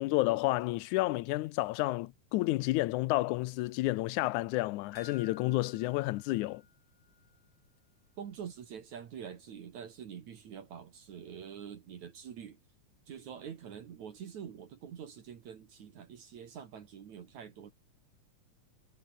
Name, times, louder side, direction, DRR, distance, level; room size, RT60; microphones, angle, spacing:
voice 1, 0.0-6.6, left 19 dB, 80° left, 1.9 m, -30 dB
sound 1, 5.0-7.5 7.8-7.9 8.3-8.4, left 6 dB, 40° left, 2.9 m, -55 dB
voice 2, 8.2-12.6 13.1-17.7, right 8 dB, 60° right, 3.1 m, -46 dB
omnidirectional pair, 4.0 m